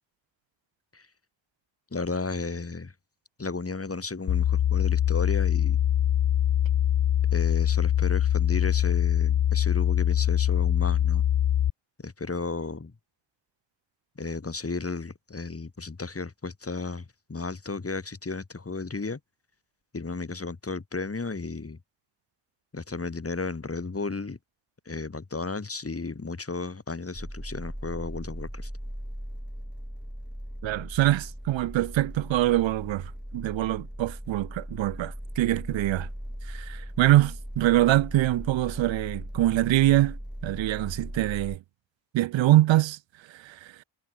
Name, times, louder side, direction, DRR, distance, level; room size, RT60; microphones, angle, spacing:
voice 1, 1.9-2.9 3.4-5.8 7.3-11.2 12.0-12.9 14.2-19.2 19.9-21.8 22.7-24.4 24.8-28.7, left 3 dB, 30° left, 3.4 m, -34 dB
sound 1, 4.3-11.7, left 10 dB, 45° left, 0.6 m, -23 dB
sound 2, 27.1-41.6, equal, ahead, 5.4 m, -39 dB
voice 2, 30.6-36.1 36.5-40.2 40.4-41.6 42.1-43.0 43.3-43.7, right 15 dB, 90° right, 0.9 m, -24 dB
cardioid pair, 50°, 44 cm